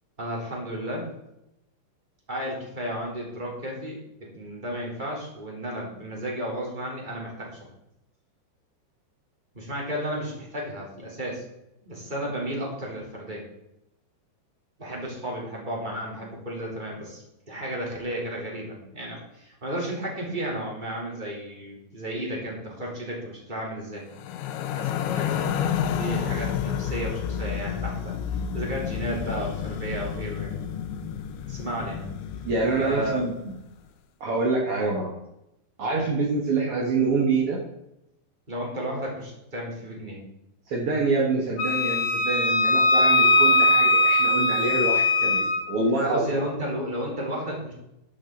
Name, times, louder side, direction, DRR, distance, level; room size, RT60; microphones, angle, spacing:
voice 1, 0.2-1.1 2.3-7.5 9.5-11.4 11.8-13.4 14.8-24.1 24.7-25.5 25.9-28.2 28.5-30.5 31.4-32.1 32.8-33.2 35.9-36.1 38.5-40.2 46.0-47.7, right 1 dB, 10° right, -3 dB, 2.9 m, -33 dB
sound 1, 24.1-33.4, left 8 dB, 85° left, 3.2 m, -30 dB
voice 2, 32.4-33.5 34.2-35.1 35.8-37.6 40.7-46.2, right 3 dB, 70° right, -1 dB, 1.3 m, -26 dB
Wind instrument woodwind instrument, 41.6-45.6, left 1 dB, 60° left, 3.4 m, -20 dB
11.5 x 10.5 x 3.9 m, 0.85 s
omnidirectional pair, 5.2 m